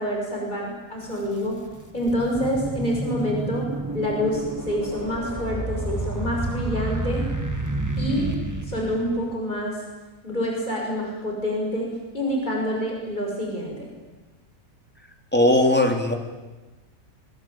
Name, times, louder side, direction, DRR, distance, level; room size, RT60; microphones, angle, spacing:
voice 1, 0.0-1.6 1.9-3.7 3.9-7.3 8.0-8.3 8.6-9.8 10.2-13.9, equal, 30° left, -1 dB, 6.9 m, -27 dB
sound 1, 1.0-1.1 1.7-9.3, right 2 dB, 10° right, 2.6 m, -30 dB
voice 2, 15.3-16.1, left 1 dB, 5° left, 3 dB, 3.6 m, -18 dB
25.5 x 24.0 x 9.0 m, 1.2 s
omnidirectional pair, 1.5 m